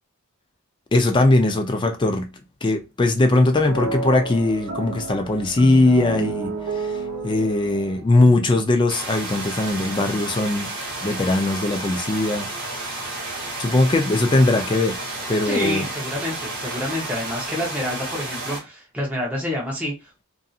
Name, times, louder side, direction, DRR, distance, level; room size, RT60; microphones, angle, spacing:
voice 1, 0.9-2.3 2.6-6.9 7.2-10.7 11.0-12.5 13.6-15.0 15.3-15.8, left 2 dB, 20° left, 0.3 m, -20 dB
sound 1, 3.5-8.7, right 3 dB, 80° right, 0.8 m, -31 dB
sound 2, 8.9-18.6, right 2 dB, 55° right, 1.3 m, -31 dB
voice 2, 15.4-20.2, left 1 dB, 5° right, 0.7 m, -28 dB
2.6 x 2.6 x 2.3 m
head